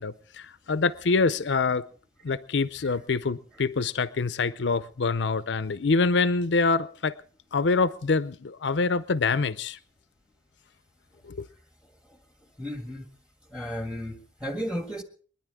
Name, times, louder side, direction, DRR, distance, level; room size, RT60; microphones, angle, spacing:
voice 1, 0.0-1.8 2.2-7.1 7.5-9.8 11.2-11.5, left 4 dB, 80° left, 0.6 m, -25 dB
voice 2, 12.6-13.1 13.5-15.0, equal, 5° right, 1.7 m, -34 dB
29.5 x 10.5 x 3.6 m
head